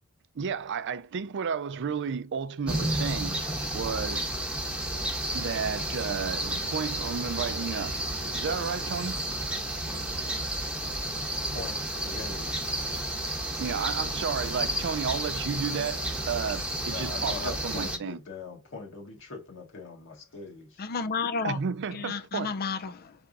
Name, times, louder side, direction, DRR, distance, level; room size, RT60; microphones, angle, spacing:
voice 1, 0.4-3.4 3.7-4.3 5.3-7.9 8.3-9.3 13.6-18.2 21.4-22.5, right 6 dB, 55° right, 0.4 m, -32 dB
sound 1, 2.7-18.0, right 1 dB, 5° right, 1.0 m, -32 dB
voice 2, 11.5-12.6 16.8-20.8, left 4 dB, 60° left, 1.3 m, -41 dB
voice 3, 20.8-21.6 21.9-23.1, left 5 dB, 45° left, 0.5 m, -31 dB
4.0 x 3.5 x 3.8 m
head